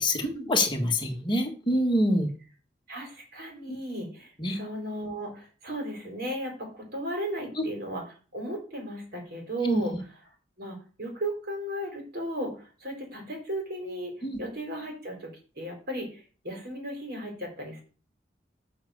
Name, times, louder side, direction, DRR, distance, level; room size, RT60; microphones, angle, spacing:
voice 1, 0.0-2.3 3.7-3.8 4.4-4.6 7.6-7.7 9.6-9.8 14.2-14.4, left 1 dB, 25° left, 2 dB, 1.6 m, -26 dB
voice 2, 2.9-9.9 10.6-14.1 14.4-15.3 15.6-17.8, right 1 dB, 60° right, 2 dB, 3.5 m, -35 dB
7.9 x 4.9 x 6.7 m, 0.37 s
head